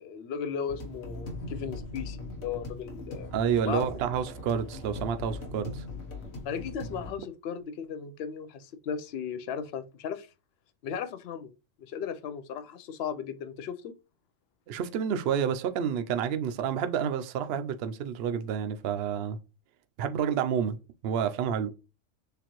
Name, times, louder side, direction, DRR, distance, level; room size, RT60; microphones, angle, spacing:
voice 1, 0.0-3.3 3.6-3.9 6.4-10.3 10.8-11.5 11.8-13.9, left 7 dB, 60° left, 0.7 m, -36 dB
sound 1, 0.7-7.1, left 2 dB, 90° left, 1.5 m, -40 dB
voice 2, 3.3-5.8 14.7-19.4 20.0-20.8 21.0-21.7, right 8 dB, 60° right, 0.7 m, -29 dB
6.8 x 2.5 x 3.0 m
omnidirectional pair, 1.4 m